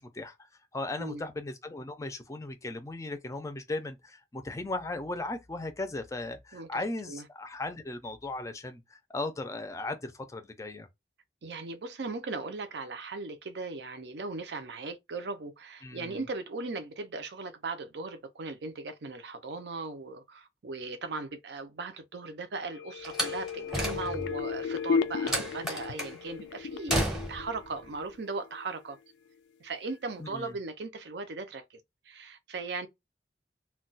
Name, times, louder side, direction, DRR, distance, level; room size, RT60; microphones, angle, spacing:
voice 1, 0.0-10.9 15.8-16.2 30.2-30.5, left 2 dB, 20° left, 0.4 m, -37 dB
voice 2, 11.4-29.0 29.6-32.9, right 3 dB, 75° right, 0.5 m, -38 dB
sound 1, 22.7-28.4 28.7-28.8, left 6 dB, 90° left, 0.3 m, -34 dB
Slam, 23.0-24.4 25.3-26.2 26.9-27.5, right 1 dB, 5° right, 0.8 m, -32 dB
2.2 x 2.2 x 3.8 m
head